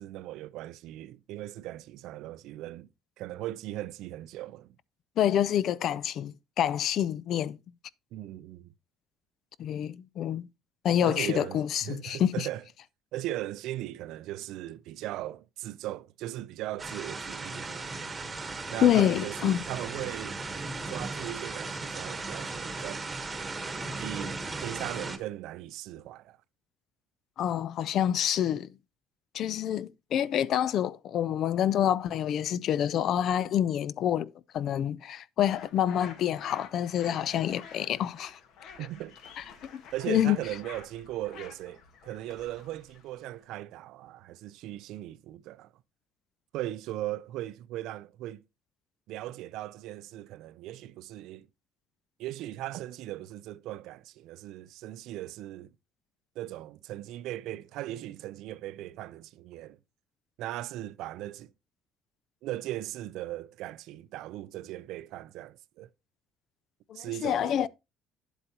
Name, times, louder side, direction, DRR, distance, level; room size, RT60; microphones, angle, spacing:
voice 1, 0.0-2.9 3.2-4.7 8.1-8.7 11.0-12.6 13.1-18.0 18.7-20.4 20.9-23.1 24.0-26.4 38.8-39.2 39.9-45.7 46.5-48.4 49.1-51.5 52.2-55.7 56.4-59.8 60.4-61.5 62.4-65.9 66.9-67.7, right 14 dB, 70° right, 0.5 m, -38 dB
voice 2, 5.2-7.6 9.6-10.5 10.8-12.5 18.8-19.6 27.4-28.7 29.3-38.4 39.7-39.8 40.1-40.4 66.9-67.7, left 10 dB, 50° left, 0.4 m, -27 dB
sound 1, 16.8-25.2, right 3 dB, 15° right, 1.2 m, -37 dB
sound 2, 35.4-43.4, left 6 dB, 65° left, 1.6 m, -49 dB
10.0 x 8.0 x 2.9 m
cardioid pair, 155°, 0 cm